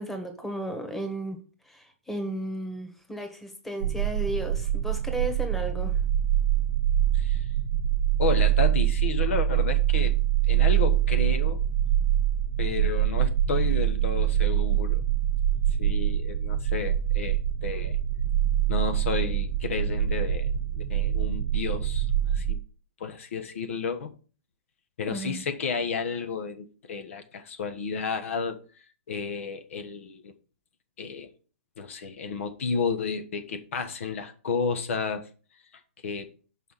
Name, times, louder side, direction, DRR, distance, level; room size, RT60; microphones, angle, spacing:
voice 1, 0.0-6.0 25.1-25.4, right 1 dB, 5° left, 1.5 m, -34 dB
sound 1, 3.8-22.5, right 11 dB, 70° right, 0.8 m, -24 dB
voice 2, 7.1-7.5 8.2-10.2 10.5-11.6 12.6-15.0 15.8-18.0 18.7-22.6 23.0-24.2 25.0-28.6 29.1-30.3 31.0-31.3 31.8-35.3 36.0-36.3, left 5 dB, 75° left, 1.3 m, -32 dB
6.1 x 5.5 x 5.7 m
hypercardioid pair, 135°, 7 cm